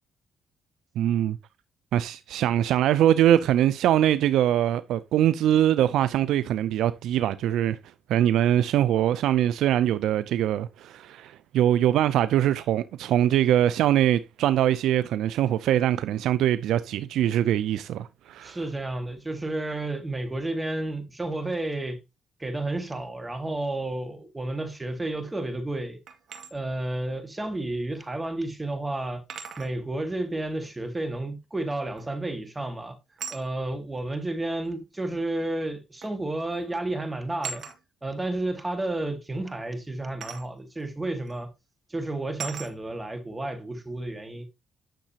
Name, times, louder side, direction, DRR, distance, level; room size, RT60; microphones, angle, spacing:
voice 1, 1.0-1.4 1.9-7.8 8.1-18.6, right 11 dB, 85° right, 0.4 m, -23 dB
voice 2, 18.4-22.0 22.4-26.0 26.5-29.2 29.6-33.0 33.3-37.6 38.0-41.5 41.9-44.4, right 2 dB, 15° right, 1.9 m, -31 dB
sound 1, 26.1-26.5 28.0-28.1 29.3-29.7 32.0-32.3 33.2-33.5 34.7-34.8 36.0-36.2 36.5-36.8 37.4-37.8 40.2-40.5 41.3-41.4 42.4-42.7, right 6 dB, 60° right, 2.0 m, -38 dB
10.0 x 6.5 x 2.9 m
cardioid pair, 90°, 0 cm